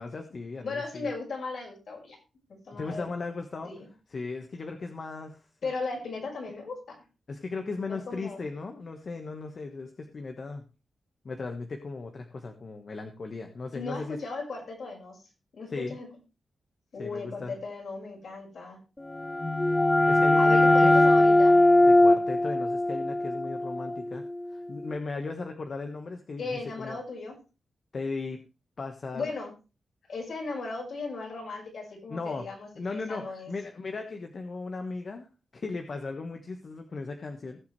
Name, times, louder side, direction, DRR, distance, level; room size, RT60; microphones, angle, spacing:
voice 1, 0.0-1.1 2.8-3.7 4.1-5.4 7.3-10.6 11.2-14.2 15.7-16.0 17.0-17.6 20.1-20.9 21.9-24.2 24.5-27.0 27.9-28.4 28.8-29.3 32.1-32.5 32.8-37.6, left 3 dB, 50° left, 5 dB, 1.4 m, -37 dB
voice 2, 0.6-2.2 2.5-3.1 3.6-3.9 5.6-7.0 7.9-8.4 13.7-15.2 15.5-16.1 16.9-18.8 20.4-21.6 26.4-27.4 29.1-29.5 30.1-33.5, left 3 dB, 65° left, 0 dB, 5.5 m, -36 dB
sound 1, 19.1-24.6, left 1 dB, 15° left, 0.8 m, -21 dB
19.0 x 7.1 x 3.3 m, 0.31 s
wide cardioid pair, 100°, 0 cm